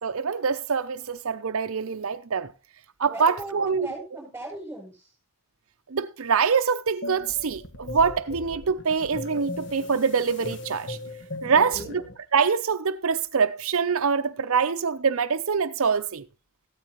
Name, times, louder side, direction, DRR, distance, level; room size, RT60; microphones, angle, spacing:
voice 1, 0.0-2.5 3.0-3.9 5.9-11.0 11.4-12.0 12.3-16.2, right 5 dB, 75° right, 0.6 m, -24 dB
voice 2, 3.0-5.1 11.5-12.0, right 2 dB, 10° right, 7.2 m, -38 dB
sound 1, 7.0-12.2, left 2 dB, 55° left, 1.6 m, -38 dB
15.0 x 12.5 x 3.0 m
head